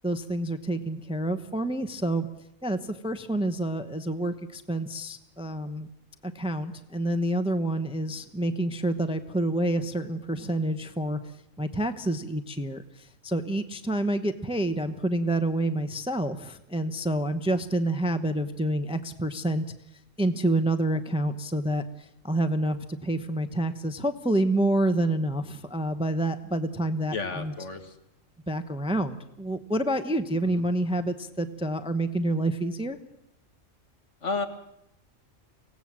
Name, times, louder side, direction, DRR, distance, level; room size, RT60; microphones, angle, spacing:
voice 1, 0.0-2.3 2.6-5.9 6.2-11.2 11.6-12.8 13.2-19.6 20.2-21.8 22.2-27.5 28.5-33.0, right 1 dB, 5° right, 10 dB, 0.8 m, -28 dB
voice 2, 27.1-28.0 30.5-30.6 34.2-34.5, left 3 dB, 65° left, 7 dB, 2.0 m, -32 dB
24.5 x 17.5 x 7.5 m, 0.83 s
omnidirectional pair, 1.4 m